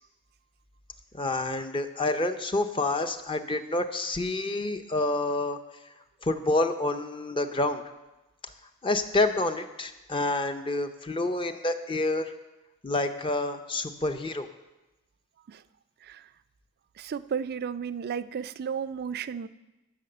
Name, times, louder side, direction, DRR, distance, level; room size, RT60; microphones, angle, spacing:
voice 1, 1.1-5.6 6.2-7.8 8.8-12.3 12.8-14.5, left 2 dB, 25° left, 7 dB, 0.5 m, -28 dB
voice 2, 17.0-19.5, right 7 dB, 45° right, 15 dB, 0.3 m, -33 dB
12.5 x 5.9 x 6.7 m, 1.0 s
head